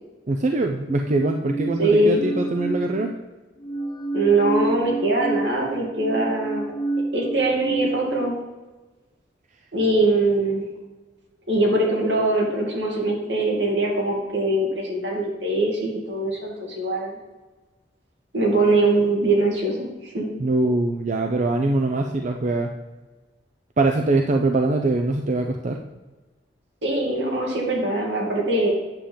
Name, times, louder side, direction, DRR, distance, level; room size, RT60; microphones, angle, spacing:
voice 1, 0.3-3.1 20.4-22.7 23.8-25.8, right 2 dB, 45° right, 3 dB, 0.5 m, -22 dB
sound 1, 0.9-3.2 3.6-8.3, right 2 dB, 25° left, 0.7 m, -29 dB
voice 2, 1.8-2.2 4.1-6.6 7.1-8.3 9.7-10.6 11.5-17.2 18.3-20.3 26.8-28.7, right 2 dB, 75° right, -2 dB, 2.5 m, -22 dB
9.1 x 3.7 x 7.1 m, 1.2 s
head